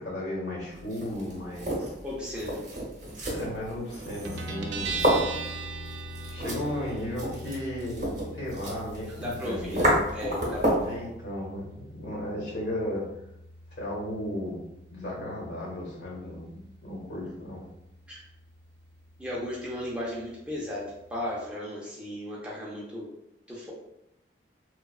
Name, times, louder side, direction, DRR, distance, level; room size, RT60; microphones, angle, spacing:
voice 1, 0.0-1.9 3.3-5.2 6.3-10.1 10.8-13.1 13.7-14.6 14.9-17.6, left 1 dB, 85° left, -4 dB, 1.1 m, -35 dB
sound 1, 0.8-11.0, equal, 45° right, 0.8 m, -31 dB
voice 2, 2.0-2.6 9.1-11.0 18.1-18.2 19.2-23.1 23.5-23.7, left 1 dB, 5° right, -6 dB, 0.5 m, -35 dB
Guitar, 4.2-21.4, right 3 dB, 90° right, 0.4 m, -42 dB
3.1 x 2.2 x 2.3 m, 0.83 s
head